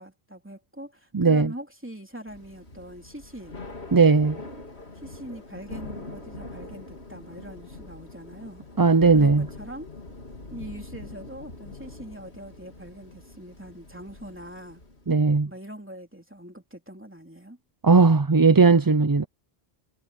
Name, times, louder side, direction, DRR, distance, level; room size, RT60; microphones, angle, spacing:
voice 1, 0.0-3.6 4.9-8.6 9.1-10.0 10.5-14.8 15.4-17.6, right 1 dB, 10° right, 3.2 m, -42 dB
voice 2, 1.1-1.5 3.9-4.4 8.8-9.4 15.1-15.5 17.8-19.3, right 4 dB, 30° right, 0.4 m, -17 dB
Thunder / Rain, 2.3-15.2, left 2 dB, 80° left, 3.8 m, -43 dB
omnidirectional pair, 1.1 m